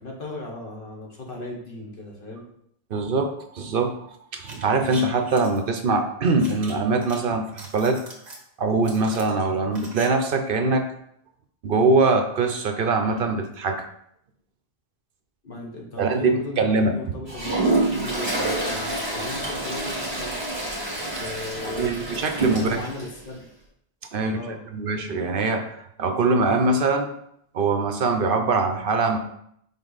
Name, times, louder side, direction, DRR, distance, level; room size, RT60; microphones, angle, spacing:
voice 1, 0.0-2.5 15.4-20.3 21.0-23.5 24.2-24.6, left 2 dB, 60° left, -1 dB, 1.4 m, -37 dB
voice 2, 2.9-8.0 8.6-10.8 11.6-13.9 16.0-16.9 21.7-22.8 24.1-24.4 24.7-27.1 27.5-29.2, right 3 dB, 60° right, 6 dB, 0.8 m, -23 dB
sound 1, 4.4-5.6 6.4-7.2 7.5-8.4 8.8-10.1 10.3-10.4, right 2 dB, 45° right, 1.2 m, -41 dB
Toilet flush, 17.3-23.1, right 2 dB, 25° right, 1.4 m, -27 dB
5.5 x 4.7 x 4.0 m, 0.72 s
omnidirectional pair, 1.1 m